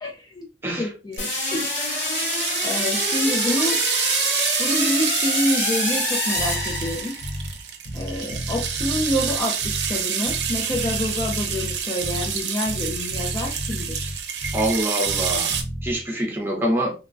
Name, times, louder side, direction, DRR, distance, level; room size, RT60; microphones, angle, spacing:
voice 1, 0.0-0.5 0.8-1.7 2.1-2.4 2.6-3.8 4.6-7.1 7.9-14.2, left 1 dB, 20° left, 0.3 m, -27 dB
sound 1, 1.1-15.6, right 7 dB, 75° right, 0.5 m, -27 dB
sound 2, 1.2-7.4, left 2 dB, 45° left, 1.3 m, -26 dB
Bass guitar, 6.3-7.6 7.8-10.0 10.2-12.4 12.6-14.8 15.0-15.9, equal, 70° left, 1.0 m, -32 dB
voice 2, 14.5-15.6 15.8-16.9, right 1 dB, 15° right, 0.7 m, -25 dB
2.9 x 2.2 x 2.5 m
head